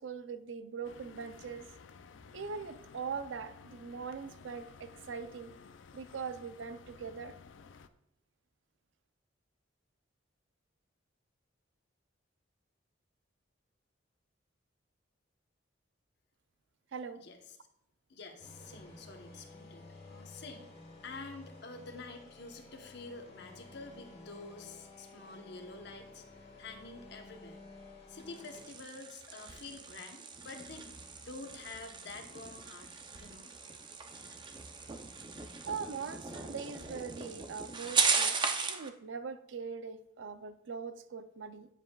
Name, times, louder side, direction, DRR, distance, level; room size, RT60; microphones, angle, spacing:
voice 1, 0.0-1.7 2.3-5.5 5.9-7.3 16.9-17.2 35.7-38.3 38.6-41.7, right 5 dB, 75° right, 12 dB, 0.5 m, -41 dB
sound 1, 0.8-7.9, left 5 dB, 75° left, 0.4 m, -55 dB
voice 2, 17.1-17.6 18.1-20.7 21.0-26.3 26.6-27.6 28.1-33.5, left 3 dB, 60° left, 4 dB, 1.0 m, -48 dB
sound 2, 18.4-28.6, left 2 dB, 35° left, 1.6 m, -53 dB
sound 3, 28.2-38.9, right 5 dB, 25° right, 0.5 m, -37 dB
9.8 x 7.3 x 2.3 m, 0.76 s
head